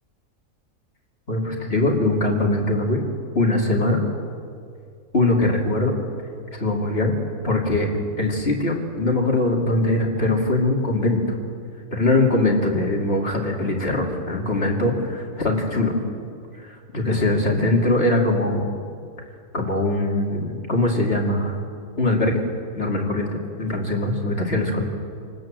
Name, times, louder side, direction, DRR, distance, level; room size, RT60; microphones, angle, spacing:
voice 1, 1.3-3.0 3.3-4.0 5.1-5.9 6.6-7.2 7.4-7.9 8.2-11.4 11.9-15.9 16.6-18.7 19.5-21.6 22.0-22.4 22.7-24.8, left 2 dB, 45° left, 0 dB, 3.1 m, -22 dB
27.5 x 19.0 x 7.6 m, 2.3 s
omnidirectional pair, 1.4 m